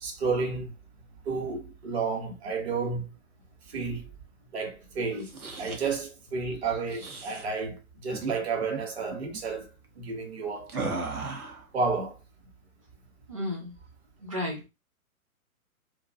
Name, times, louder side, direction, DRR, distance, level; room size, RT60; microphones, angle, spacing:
voice 1, 0.0-0.7 1.3-3.1 3.7-4.1 4.5-5.3 5.6-9.7 10.0-10.7 11.7-12.2, right 4 dB, 45° right, 0.9 m, -31 dB
sound 1, 5.1-6.0 6.9-7.5 8.1-8.3 8.6-8.8 9.1-9.4 10.7-11.6, right 3 dB, 75° right, 0.8 m, -36 dB
voice 2, 13.3-13.7 14.2-14.7, left 1 dB, 25° right, 0.4 m, -33 dB
2.5 x 2.2 x 2.3 m
figure-of-eight pair, 130°, 44 cm